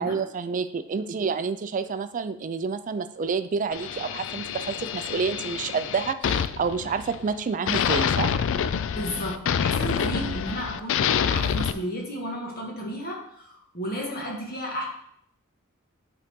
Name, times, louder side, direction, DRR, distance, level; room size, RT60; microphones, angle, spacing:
voice 1, 0.0-8.4, right 5 dB, 40° right, 11 dB, 0.4 m, -29 dB
sound 1, 3.7-7.3 7.7-11.7, left 8 dB, 65° left, 0.3 m, -27 dB
voice 2, 8.9-14.8, equal, 45° left, -1 dB, 1.7 m, -33 dB
8.2 x 3.9 x 3.6 m, 0.69 s
head